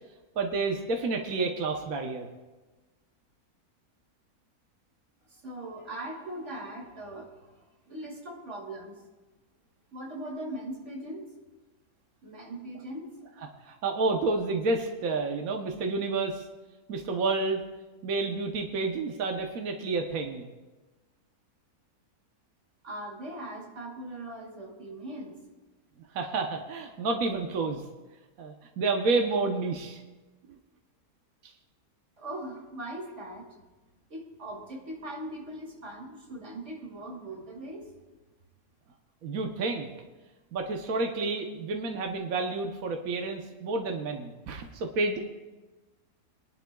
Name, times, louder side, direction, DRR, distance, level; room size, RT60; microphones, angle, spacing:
voice 1, 0.4-2.3 13.7-16.5 16.9-17.6 18.0-20.5 26.1-27.8 28.4-30.0 39.2-39.9 40.5-45.2, right 3 dB, 65° right, 3 dB, 1.3 m, -29 dB
voice 2, 5.3-9.0 9.9-11.3 12.2-13.1 22.8-25.4 32.2-33.5 34.1-37.8, right 1 dB, 50° right, -2 dB, 2.9 m, -40 dB
23.5 x 11.5 x 2.3 m, 1.2 s
omnidirectional pair, 1.6 m